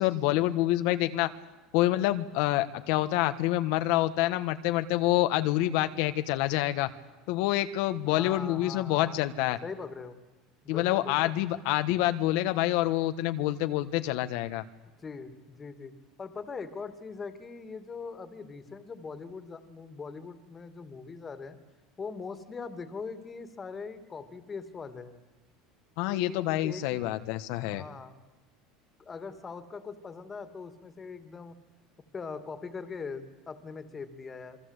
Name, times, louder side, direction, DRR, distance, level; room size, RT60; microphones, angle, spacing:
voice 1, 0.0-1.3 1.7-6.9 7.3-9.6 10.7-14.6 26.0-27.8, left 15 dB, 70° left, 9 dB, 1.3 m, -27 dB
voice 2, 8.0-9.2 9.6-10.2 10.6-11.3 14.9-15.9 16.2-21.6 22.0-25.2 26.1-27.2 27.6-28.2 29.0-31.5 32.1-34.6, left 5 dB, 20° left, 10 dB, 2.3 m, -41 dB
28.0 x 22.5 x 8.2 m, 1.2 s
supercardioid pair, 140°, 0 cm